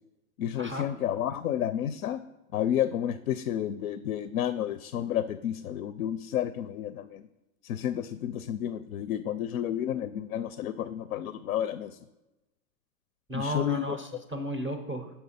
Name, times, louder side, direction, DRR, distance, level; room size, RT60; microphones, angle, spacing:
voice 1, 0.4-2.2 2.5-7.2 7.6-11.9 13.3-14.0, left 10 dB, 85° left, 13 dB, 0.5 m, -31 dB
voice 2, 13.3-15.1, equal, 10° right, 5 dB, 0.4 m, -34 dB
6.9 x 5.7 x 4.2 m, 1.0 s
hypercardioid pair, 120°, 42 cm